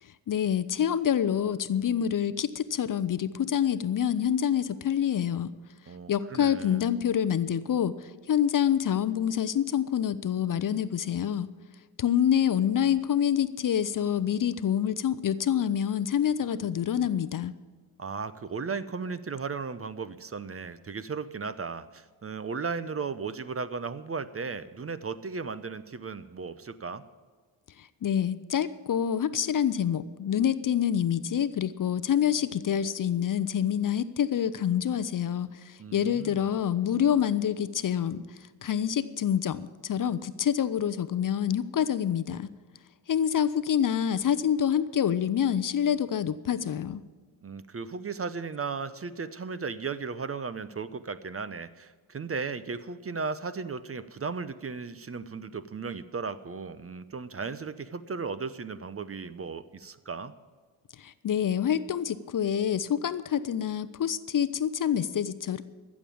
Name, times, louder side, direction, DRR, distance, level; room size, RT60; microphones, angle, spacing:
voice 1, 0.0-5.5 6.1-11.5 12.0-17.5 27.8-42.5 43.1-47.0 61.0-65.6, left 9 dB, 40° left, 15 dB, 0.7 m, -27 dB
voice 2, 5.9-6.8 18.0-27.0 35.8-36.5 47.4-60.3, right 5 dB, 30° right, 15 dB, 0.8 m, -36 dB
14.0 x 7.4 x 8.6 m, 1.5 s
supercardioid pair, 70°, 49 cm